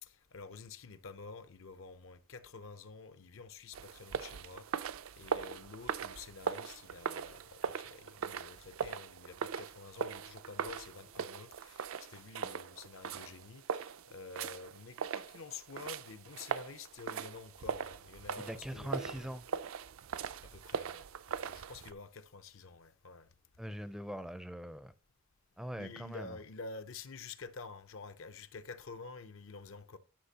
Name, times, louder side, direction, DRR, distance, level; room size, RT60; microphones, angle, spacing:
voice 1, 0.0-19.3 20.4-21.0 21.4-23.3 25.7-30.0, left 4 dB, 65° left, 0.6 m, -49 dB
sound 1, 3.7-21.9, right 6 dB, 75° right, 0.4 m, -40 dB
voice 2, 18.4-19.4 23.6-24.9 25.6-26.4, equal, 5° right, 0.4 m, -42 dB
11.5 x 5.8 x 2.8 m
head